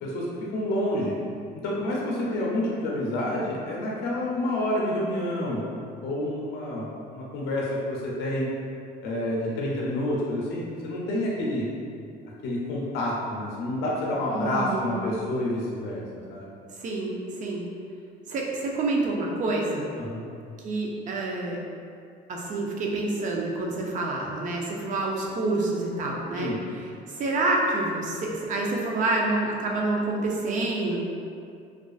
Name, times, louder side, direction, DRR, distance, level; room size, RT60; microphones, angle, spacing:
voice 1, 0.0-1.2 1.6-5.6 6.0-8.5 9.0-11.7 12.4-16.0 16.3-16.5 20.0-20.3 26.4-26.6, left 1 dB, 75° left, -4 dB, 0.5 m, -28 dB
voice 2, 14.3-15.0 16.8-17.7 18.3-19.9 20.6-21.6 22.3-26.8 27.1-31.0, right 2 dB, 45° right, -1 dB, 0.5 m, -28 dB
2.4 x 2.4 x 2.3 m, 2.4 s
cardioid pair, 105°, 17 cm